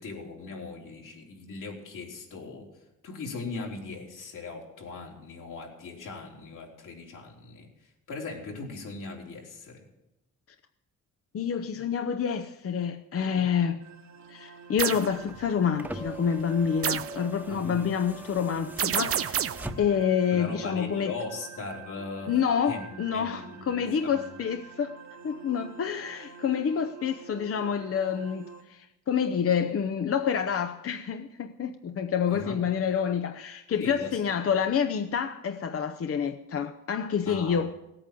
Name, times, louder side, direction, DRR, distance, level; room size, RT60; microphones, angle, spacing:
voice 1, 0.0-2.7 3.0-7.7 8.1-9.8 13.4-13.5 17.5-17.8 20.3-24.4 32.3-32.6 33.8-34.3 37.2-37.7, left 3 dB, 75° left, 3.8 m, -39 dB
voice 2, 11.3-13.8 14.3-19.5 19.8-21.1 22.3-24.9 25.2-37.7, left 7 dB, 45° left, 0.7 m, -28 dB
sound 1, 13.8-28.6, right 6 dB, 65° right, 1.6 m, -47 dB
sound 2, 14.8-15.1 16.8-17.2 18.8-19.7, right 9 dB, 45° right, 0.5 m, -28 dB
sound 3, 15.2-20.2 21.4-21.5, right 1 dB, 5° right, 1.1 m, -42 dB
17.5 x 8.8 x 7.6 m
cardioid pair, 90°, 32 cm